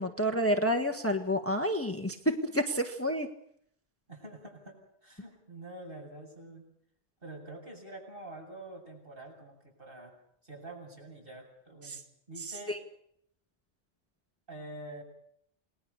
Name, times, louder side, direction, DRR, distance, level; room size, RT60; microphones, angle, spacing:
voice 1, 0.0-3.3 11.8-12.0 12.4-12.8, equal, 10° left, 5 dB, 1.4 m, -29 dB
voice 2, 4.1-6.7 7.2-10.1 10.4-12.0 12.3-12.8 14.5-15.0, right 1 dB, 50° right, 0 dB, 8.0 m, -46 dB
28.5 x 20.0 x 6.9 m, 0.70 s
omnidirectional pair, 1.2 m